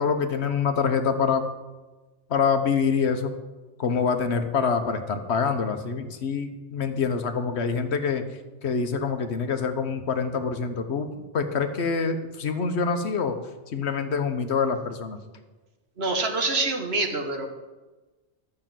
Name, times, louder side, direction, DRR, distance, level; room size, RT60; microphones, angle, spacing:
voice 1, 0.0-1.4 2.3-3.3 3.8-8.3 8.6-13.4 13.7-15.2, left 5 dB, 70° left, 7 dB, 1.2 m, -25 dB
voice 2, 16.0-17.5, right 3 dB, 65° right, 4 dB, 1.6 m, -26 dB
12.5 x 6.4 x 7.5 m, 1.2 s
omnidirectional pair, 1.2 m